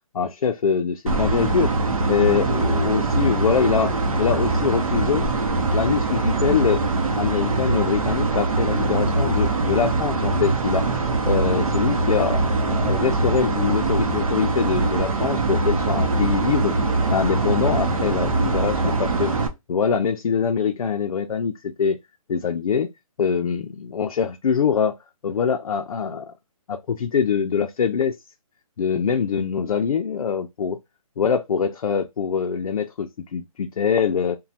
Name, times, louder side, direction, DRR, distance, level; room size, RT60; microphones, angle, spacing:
voice 1, 0.1-1.7 2.1-5.4 5.7-6.8 7.2-10.9 11.3-16.8 17.1-19.3 19.7-22.0 22.3-22.9 23.2-25.0 25.2-26.3 26.7-28.1 28.8-30.8 31.2-34.4, left 6 dB, 70° left, 0.4 m, -23 dB
Industrial ventilation at hydroelectric plant, 1.1-19.5, right 3 dB, 65° right, 0.7 m, -22 dB
3.0 x 2.2 x 2.7 m
hypercardioid pair, 170°, 19 cm